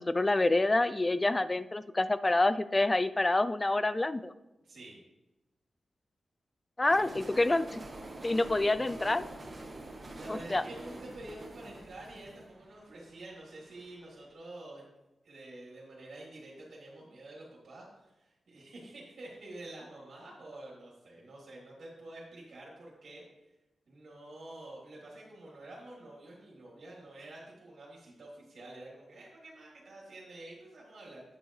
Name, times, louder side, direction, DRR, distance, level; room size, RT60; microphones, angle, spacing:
voice 1, 0.0-4.3 6.8-7.8 8.2-9.2 10.3-10.6, left 2 dB, 25° left, 14 dB, 0.3 m, -27 dB
voice 2, 4.6-5.0 9.8-14.8 15.2-23.2 23.9-31.2, right 1 dB, 70° right, -5 dB, 3.1 m, -48 dB
sound 1, 6.9-13.9, right 2 dB, 35° right, 1.4 m, -46 dB
8.9 x 8.0 x 3.2 m, 1.0 s
wide cardioid pair, 105°, 0 cm